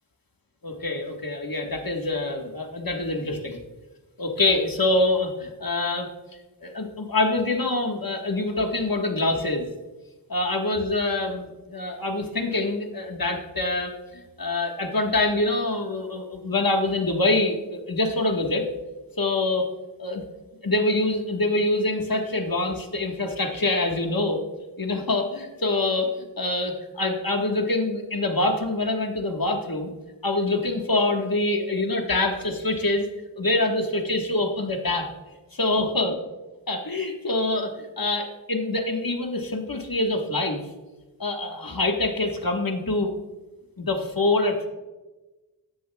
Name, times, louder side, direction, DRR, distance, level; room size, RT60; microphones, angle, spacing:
voice 1, 0.6-3.6 4.2-6.1 6.6-9.7 10.3-14.0 14.4-18.6 19.2-19.7 20.0-20.2 20.6-24.4 24.8-29.9 30.2-33.1 33.4-35.1 35.5-36.1 36.7-40.7 41.2-43.1 43.8-44.7, left 2 dB, 50° left, 3 dB, 1.5 m, -25 dB
14.5 x 10.5 x 2.3 m, 1.1 s
wide cardioid pair, 40°, 46 cm